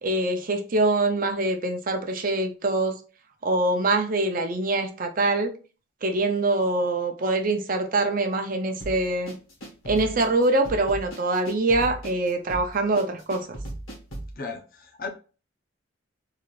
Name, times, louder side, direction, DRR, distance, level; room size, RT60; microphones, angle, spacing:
voice 1, 0.0-2.9 3.4-5.5 6.0-9.3 9.9-13.6, right 2 dB, 45° right, 5 dB, 0.6 m, -24 dB
sound 1, 8.8-14.3, right 1 dB, 80° left, 1.4 m, -37 dB
voice 2, 14.4-15.1, left 4 dB, 45° left, 4 dB, 0.6 m, -35 dB
3.8 x 2.5 x 3.1 m, 0.36 s
head